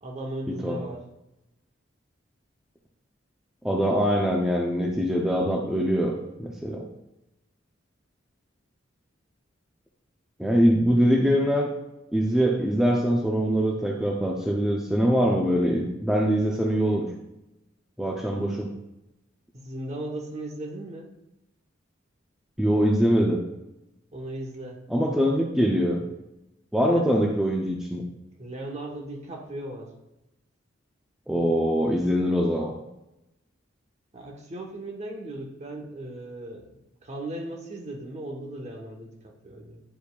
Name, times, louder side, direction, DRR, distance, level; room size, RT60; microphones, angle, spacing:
voice 1, 0.0-1.0 19.5-21.1 24.1-24.8 26.8-27.1 28.4-29.9 34.1-39.8, right 1 dB, 35° right, 1 dB, 1.0 m, -37 dB
voice 2, 3.6-6.1 6.4-6.8 10.4-11.7 12.1-17.1 18.0-18.7 22.6-23.4 24.9-26.1 26.7-28.0 31.3-32.7, equal, 5° right, -1 dB, 0.5 m, -23 dB
10.0 x 4.7 x 2.3 m, 0.92 s
head